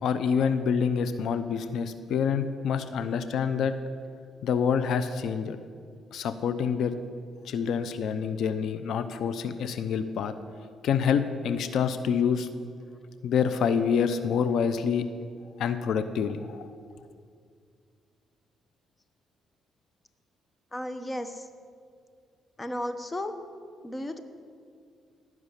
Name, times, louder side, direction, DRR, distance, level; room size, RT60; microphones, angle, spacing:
voice 1, 0.0-3.7 4.4-5.6 6.1-6.9 7.4-10.3 10.8-12.5 13.2-15.1 15.6-16.7, left 7 dB, 75° left, 11 dB, 0.7 m, -27 dB
voice 2, 20.7-21.4 22.6-23.3 23.8-24.2, left 1 dB, 20° left, 9 dB, 1.1 m, -34 dB
16.0 x 6.2 x 9.9 m, 2.2 s
cardioid pair, 90°, 0 cm